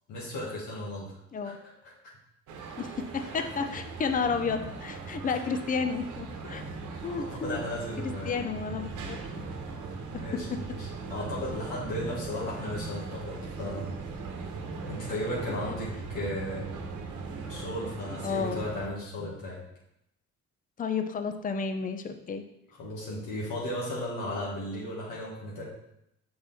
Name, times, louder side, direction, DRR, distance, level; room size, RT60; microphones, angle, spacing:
voice 1, 0.1-1.2 1.4-1.9 3.1-3.5 5.2-5.4 7.0-8.4 9.7-14.0 14.3-14.5 14.8-17.0 17.5-19.6 22.7-25.6, left 1 dB, 90° left, -5 dB, 1.6 m, -36 dB
sound 1, 2.5-18.9, right 4 dB, 80° right, 1.0 m, -39 dB
voice 2, 2.8-6.6 7.0-7.6 8.3-9.3 12.4-12.5 15.6-15.7 18.2-18.7 20.8-22.4, left 5 dB, 30° left, 7 dB, 0.6 m, -31 dB
5.9 x 4.8 x 4.1 m, 0.81 s
cardioid pair, 90°, 30 cm